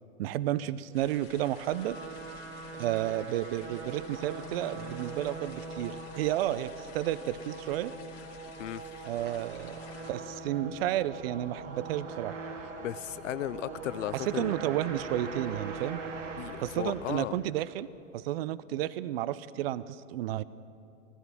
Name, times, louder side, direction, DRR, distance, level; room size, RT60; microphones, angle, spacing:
voice 1, 0.2-2.0 2.8-7.9 9.0-9.8 10.1-12.4 14.1-16.0 16.6-20.4, right 13 dB, 50° right, 18 dB, 0.5 m, -32 dB
sound 1, 0.9-10.1, left 6 dB, 50° left, 2.4 m, -51 dB
sound 2, 1.3-17.6, right 4 dB, 70° right, 2.0 m, -42 dB
sound 3, 9.9-17.1, right 2 dB, 20° right, 4.9 m, -52 dB
voice 2, 12.8-14.5 16.4-17.3, left 13 dB, 70° left, 18 dB, 0.5 m, -35 dB
15.5 x 15.0 x 6.0 m, 2.7 s
hypercardioid pair, 125°, 39 cm